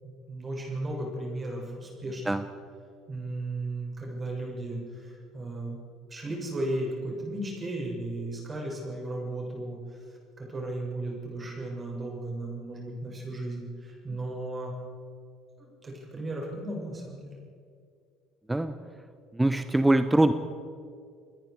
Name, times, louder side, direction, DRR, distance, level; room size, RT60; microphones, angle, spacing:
voice 1, 0.0-2.5 3.1-5.8 6.1-14.7 15.6-17.4, right 1 dB, 25° right, -1 dB, 7.0 m, -35 dB
voice 2, 19.4-20.3, right 1 dB, 10° right, 11 dB, 1.0 m, -22 dB
28.0 x 20.5 x 4.9 m, 2.3 s
figure-of-eight pair, 60°, 0 cm